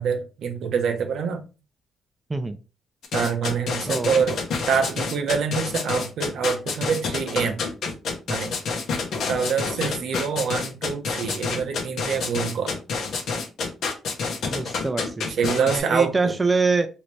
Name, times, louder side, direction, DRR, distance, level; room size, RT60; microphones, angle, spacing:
voice 1, 0.0-1.4 3.1-4.4 4.7-7.6 8.3-8.6 9.3-12.8 15.3-16.3, right 6 dB, 70° right, 0.6 m, -25 dB
sound 1, 3.0-15.8, left 4 dB, 70° left, 0.8 m, -28 dB
voice 2, 14.5-16.9, right 3 dB, 20° right, 0.4 m, -25 dB
3.1 x 2.6 x 3.1 m
cardioid pair, 90°, 0 cm